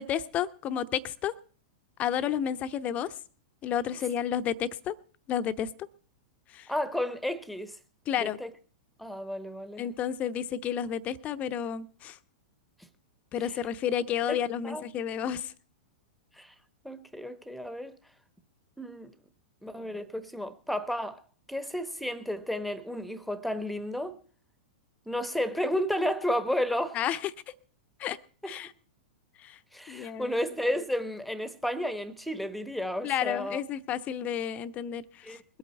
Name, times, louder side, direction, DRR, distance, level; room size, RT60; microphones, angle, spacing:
voice 1, 0.0-1.3 2.0-3.1 3.6-4.9 5.3-5.7 6.5-6.7 8.1-8.4 9.8-12.2 13.3-15.5 26.9-27.3 28.0-28.2 28.5-28.7 29.4-29.6 29.9-30.4 33.0-35.6, left 9 dB, 30° left, 0.8 m, -31 dB
voice 2, 6.7-7.8 8.2-8.5 9.0-9.9 13.4-13.5 14.3-14.8 16.4-16.5 16.8-18.0 18.8-19.1 19.6-21.2 21.5-24.2 25.1-27.0 28.4-28.5 29.7-33.6 35.2-35.4, left 1 dB, ahead, 1.1 m, -32 dB
21.5 x 8.6 x 4.3 m
figure-of-eight pair, 100°, 5 cm